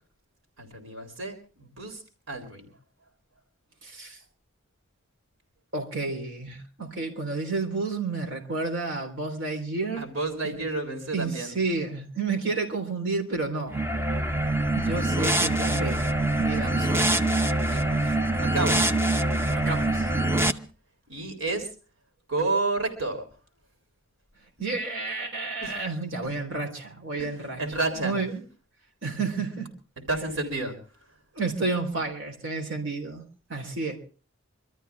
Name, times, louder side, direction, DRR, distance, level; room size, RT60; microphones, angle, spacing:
voice 1, 0.6-2.0 2.3-2.7 10.0-11.5 17.6-18.9 21.1-21.7 22.3-23.2 25.6-25.7 26.2-26.4 27.2-27.3 27.6-28.2 30.1-30.8, right 2 dB, 90° right, 5 dB, 3.8 m, -30 dB
voice 2, 3.8-4.2 5.7-10.1 10.4-10.6 11.1-13.8 14.7-16.1 16.4-17.1 19.5-20.1 24.6-27.6 28.0-28.4 29.0-29.7 31.3-33.2 33.5-34.0, right 3 dB, 65° right, 2 dB, 3.7 m, -31 dB
sound 1, 13.7-20.5, right 1 dB, 10° right, 0.8 m, -24 dB
25.0 x 13.5 x 3.5 m, 0.37 s
head